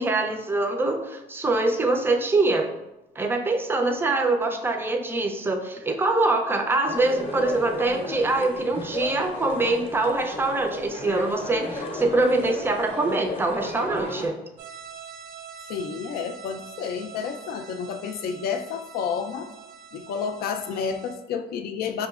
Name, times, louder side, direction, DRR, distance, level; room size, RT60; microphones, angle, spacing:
voice 1, 0.0-2.7 3.2-14.4, right 2 dB, 15° right, 4 dB, 0.4 m, -24 dB
sound 1, 6.8-14.3, left 1 dB, 35° left, 0.7 m, -34 dB
sound 2, 14.6-21.2, right 7 dB, 85° right, 0.8 m, -44 dB
voice 2, 15.7-19.5 19.9-22.1, left 6 dB, 65° left, 8 dB, 0.4 m, -30 dB
4.9 x 2.9 x 2.4 m, 0.97 s
cardioid pair, 110°, 17 cm